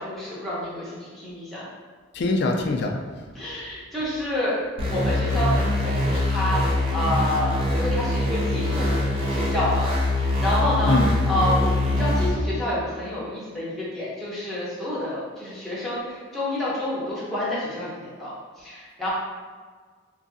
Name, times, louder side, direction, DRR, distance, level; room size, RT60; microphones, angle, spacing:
voice 1, 0.0-1.6 3.3-4.5 4.9-9.0 9.3-11.0 11.3-18.3 18.6-19.1, left 1 dB, ahead, -9 dB, 0.7 m, -28 dB
voice 2, 2.1-2.9 10.9-11.1, left 3 dB, 55° left, 2 dB, 0.3 m, -23 dB
sound 1, 4.8-12.3, left 1 dB, 30° right, 0.5 m, -23 dB
3.0 x 2.6 x 2.6 m, 1.5 s
head